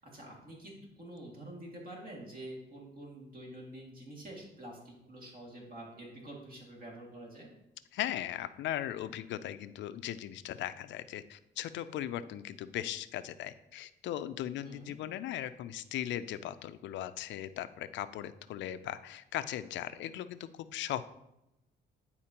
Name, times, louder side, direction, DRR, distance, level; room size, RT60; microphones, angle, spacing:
voice 1, 0.0-7.5 14.6-15.0, right 1 dB, 50° right, -2 dB, 2.2 m, -47 dB
voice 2, 7.9-21.0, left 12 dB, 75° left, 13 dB, 0.4 m, -38 dB
10.0 x 4.2 x 2.9 m, 0.89 s
cardioid pair, 90°, 19 cm